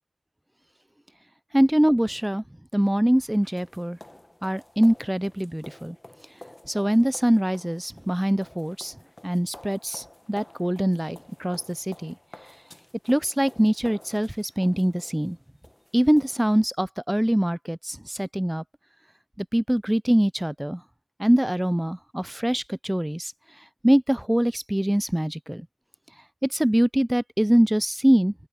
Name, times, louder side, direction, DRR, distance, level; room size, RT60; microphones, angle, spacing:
voice 1, 1.5-2.4 2.7-4.0 4.4-6.0 6.7-8.9 9.2-12.1 13.1-15.4 15.9-18.6 19.4-20.8 21.2-23.3 23.8-25.7 26.4-28.3, right 1 dB, 10° right, 0.3 m, -23 dB
sound 1, 3.0-16.7, left 1 dB, 20° left, 1.1 m, -50 dB
open air
wide cardioid pair, 65°, 0 cm